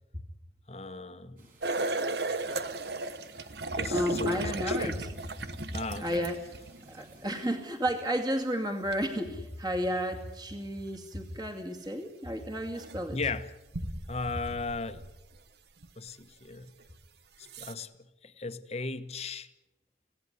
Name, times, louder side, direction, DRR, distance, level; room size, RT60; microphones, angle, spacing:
voice 1, 0.7-1.5 3.7-4.9 5.7-6.3 13.1-13.5 14.1-15.0 16.0-16.7 17.4-17.9 18.2-19.5, left 4 dB, 35° left, 1.1 m, -37 dB
sound 1, 1.4-7.6, right 1 dB, 50° right, 6.9 m, -56 dB
sound 2, 1.6-6.9 8.9-9.0 11.9-12.0 12.7-13.0 13.7-15.4 15.8-15.9 16.8-16.9 17.4-17.7, right 2 dB, 70° right, 1.1 m, -35 dB
voice 2, 3.9-5.1 5.7-6.4 6.9-13.2, equal, 25° right, 2.3 m, -32 dB
26.0 x 17.0 x 9.7 m
head